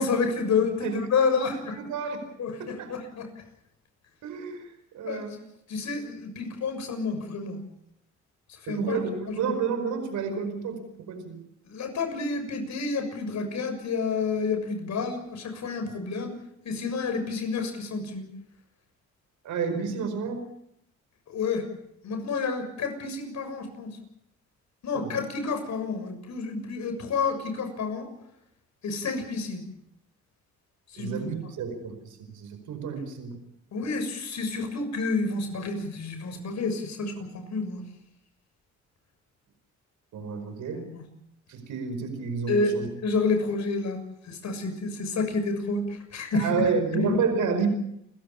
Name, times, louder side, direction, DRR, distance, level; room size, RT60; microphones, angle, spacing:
voice 1, 0.0-1.8 2.4-3.3 5.0-5.3 5.7-7.6 8.5-9.0 9.3-9.5 11.7-16.3 16.6-18.3 21.3-21.6 22.0-23.9 24.8-28.1 28.8-29.6 30.9-31.2 33.7-37.8 40.7-41.0 42.5-46.5 46.9-47.2, left 4 dB, 65° left, 7 dB, 6.7 m, -29 dB
voice 2, 1.3-2.2 2.6-2.9 4.2-4.7 4.9-5.4 8.7-10.8 11.1-11.4 19.4-20.4 24.9-25.2 31.0-33.4 40.1-40.8 41.5-42.9 46.4-47.7, right 5 dB, 75° right, 7 dB, 5.1 m, -30 dB
29.5 x 15.5 x 7.1 m, 0.77 s
cardioid pair, 90°, 30 cm